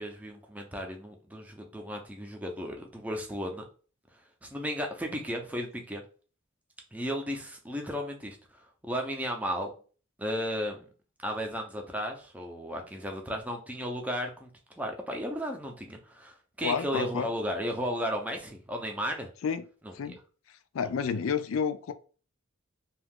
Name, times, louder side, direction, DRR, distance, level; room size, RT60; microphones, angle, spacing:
voice 1, 0.0-3.6 4.4-6.0 6.9-8.4 8.8-9.7 10.2-10.9 11.2-14.5 14.8-19.3 19.8-19.9, equal, 5° right, 0.5 m, -34 dB
voice 2, 16.6-17.3 19.4-19.6 19.9-20.2 20.7-21.9, left 6 dB, 85° left, 0.4 m, -30 dB
2.8 x 2.3 x 3.5 m
head